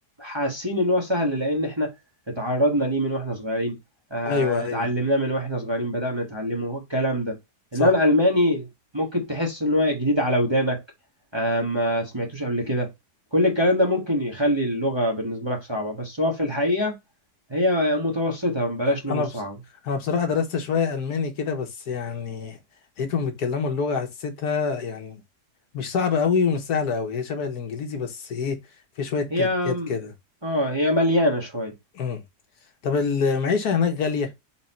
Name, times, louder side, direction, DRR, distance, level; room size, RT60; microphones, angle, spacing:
voice 1, 0.2-1.9 2.3-3.7 4.1-7.3 7.7-8.7 8.9-10.8 11.3-12.9 13.3-17.0 17.5-19.5 29.3-29.9 30.4-31.7, equal, 20° right, 1.0 m, -24 dB
voice 2, 4.2-4.9 7.7-7.9 19.1-19.3 19.8-22.6 23.0-25.2 25.7-28.6 29.0-30.1 31.9-32.2 32.8-34.3, left 5 dB, 70° left, 1.4 m, -26 dB
4.4 x 2.9 x 4.1 m
omnidirectional pair, 1.8 m